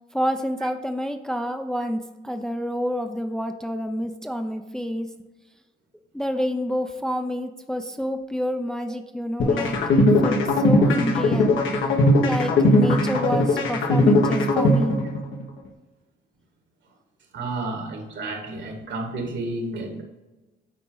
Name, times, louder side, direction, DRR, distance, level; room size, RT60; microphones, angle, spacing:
voice 1, 0.1-5.1 6.1-11.5 12.2-15.0, equal, 5° left, 6 dB, 0.5 m, -28 dB
sound 1, 9.4-15.4, left 1 dB, 80° left, 1.4 m, -19 dB
voice 2, 17.3-20.0, right 2 dB, 65° right, 3 dB, 1.9 m, -31 dB
8.9 x 4.5 x 3.9 m, 1.1 s
cardioid pair, 90°, 20 cm